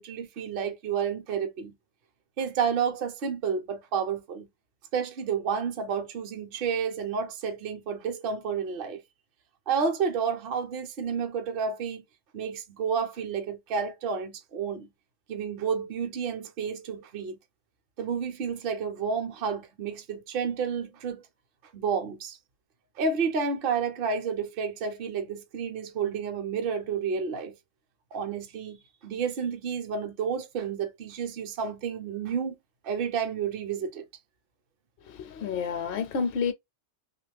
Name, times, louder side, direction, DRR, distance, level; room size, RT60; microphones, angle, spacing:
voice 1, 0.0-1.7 2.4-4.5 4.9-9.0 9.7-12.0 12.3-14.9 15.3-17.4 18.0-21.2 21.7-22.4 23.0-27.5 28.1-32.5 32.8-34.1, right 6 dB, 60° right, 0.8 m, -30 dB
voice 2, 35.0-36.5, left 6 dB, 65° left, 0.7 m, -30 dB
3.0 x 2.4 x 3.3 m
omnidirectional pair, 1.2 m